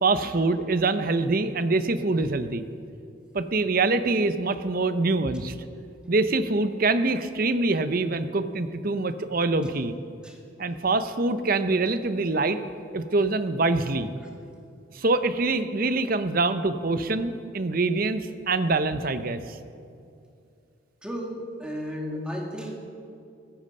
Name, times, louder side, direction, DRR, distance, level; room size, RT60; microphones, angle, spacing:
voice 1, 0.0-2.6 3.3-5.5 6.1-9.9 10.6-12.6 12.9-14.1 14.9-19.6, right 3 dB, 45° right, 11 dB, 0.7 m, -25 dB
voice 2, 21.0-22.7, equal, 5° right, -1 dB, 1.9 m, -34 dB
15.0 x 14.5 x 5.4 m, 2.5 s
head